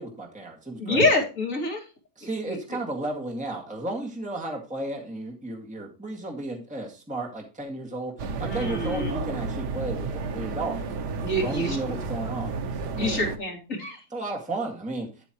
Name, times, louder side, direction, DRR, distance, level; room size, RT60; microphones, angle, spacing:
voice 1, 0.0-1.1 2.2-10.8 11.4-12.6 13.0-13.3 14.1-15.2, right 2 dB, 5° right, 0 dB, 1.9 m, -33 dB
voice 2, 0.8-1.8 2.4-2.6 8.4-9.1 11.2-11.8 13.0-14.0, left 2 dB, 50° left, 0 dB, 2.9 m, -26 dB
sound 1, 8.2-13.4, right 4 dB, 80° right, 1.6 m, -31 dB
9.5 x 8.3 x 3.0 m, 0.33 s
omnidirectional pair, 1.8 m